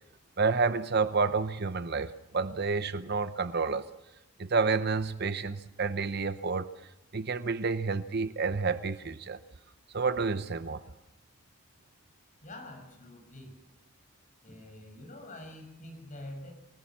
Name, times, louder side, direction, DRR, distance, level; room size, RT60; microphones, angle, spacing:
voice 1, 0.4-3.9 4.4-6.7 7.1-9.4 9.9-10.8, right 4 dB, 50° right, 0.8 m, -29 dB
voice 2, 12.4-13.5 14.4-16.5, left 1 dB, 40° left, 6.3 m, -46 dB
25.5 x 18.0 x 7.5 m
head